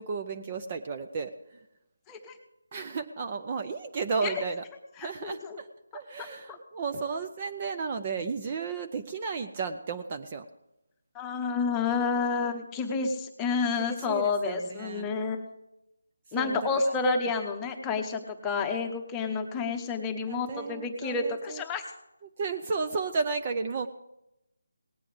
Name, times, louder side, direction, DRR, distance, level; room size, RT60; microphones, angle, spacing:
voice 1, 0.0-1.6 2.7-4.6 5.0-5.7 5.9-10.5 13.7-15.1 16.4-16.9 20.3-21.6 22.2-23.9, right 4 dB, 25° right, 6 dB, 0.5 m, -33 dB
voice 2, 5.0-5.6 6.5-6.6 11.1-15.5 16.3-21.8, left 4 dB, 10° left, 3 dB, 1.0 m, -30 dB
19.0 x 8.4 x 5.0 m, 0.86 s
figure-of-eight pair, 165°, 0 cm